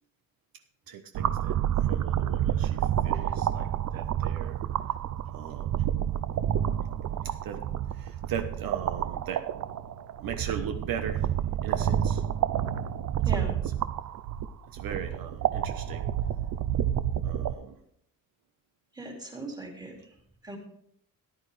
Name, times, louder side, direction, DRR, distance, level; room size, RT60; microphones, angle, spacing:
voice 1, 0.9-4.6 5.3-5.8 7.2-7.6 7.9-9.6 10.2-11.3 11.6-12.2 13.3-13.5 14.7-16.1 17.2-17.8, right 7 dB, 75° right, 7 dB, 1.1 m, -38 dB
sound 1, 1.1-17.5, right 10 dB, 55° right, 0.6 m, -29 dB
voice 2, 18.9-19.9 20.4-20.6, right 1 dB, 10° right, 0 dB, 2.5 m, -38 dB
14.0 x 11.0 x 3.3 m, 0.70 s
cardioid pair, 170°, 35 cm